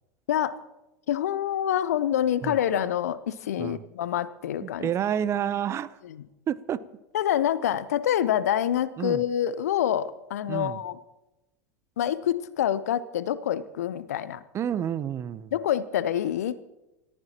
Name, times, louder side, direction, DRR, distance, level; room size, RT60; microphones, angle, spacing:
voice 1, 1.1-4.9 6.0-6.1 7.1-11.0 12.0-14.4 15.5-16.6, left 10 dB, 65° left, 16 dB, 0.8 m, -26 dB
voice 2, 4.6-6.0 6.5-6.8 9.0-9.2 10.5-10.8 14.5-15.5, right 9 dB, 30° right, 17 dB, 0.7 m, -29 dB
28.5 x 14.5 x 3.0 m, 1.0 s
figure-of-eight pair, 80°, 9 cm